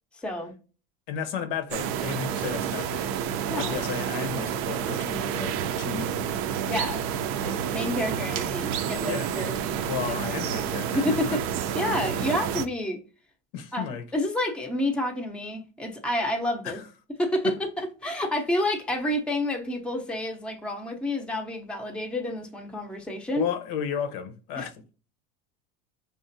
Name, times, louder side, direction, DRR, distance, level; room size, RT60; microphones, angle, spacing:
voice 1, 0.1-0.5 3.5-3.8 6.7-7.0 7.4-9.5 10.1-10.2 10.9-11.4 11.7-13.0 13.7-13.9 14.1-16.8 17.2-23.4 24.6-24.7, left 1 dB, 5° left, 0.6 m, -29 dB
voice 2, 1.1-3.2 3.5-6.3 9.1-9.3 9.8-11.4 13.5-14.1 16.6-16.9 17.4-17.6 23.4-24.9, left 8 dB, 75° left, 0.8 m, -33 dB
sound 1, 1.7-12.7, right 8 dB, 50° right, 0.4 m, -29 dB
5.2 x 2.5 x 2.6 m
supercardioid pair, 125°, 29 cm